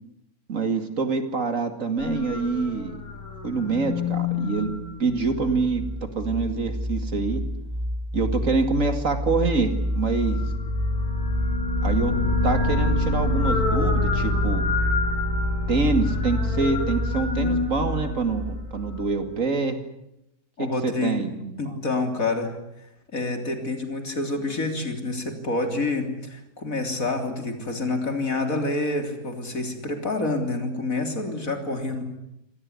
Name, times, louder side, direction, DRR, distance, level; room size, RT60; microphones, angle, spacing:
voice 1, 0.5-3.0 3.4-4.7 5.0-5.9 6.2-7.4 8.1-10.4 11.8-12.1 12.4-14.6 15.7-19.8 20.6-21.7, right 4 dB, 60° right, 8 dB, 2.7 m, -26 dB
sound 1, 2.0-5.6 9.8-19.1, left 3 dB, 85° left, 6.8 m, -28 dB
sound 2, 4.7-19.2, equal, 15° right, 1.2 m, -28 dB
voice 2, 20.6-21.3 21.6-22.6 23.1-32.0, left 2 dB, 65° left, 6 dB, 3.9 m, -27 dB
27.0 x 18.5 x 9.7 m, 0.84 s
omnidirectional pair, 1.5 m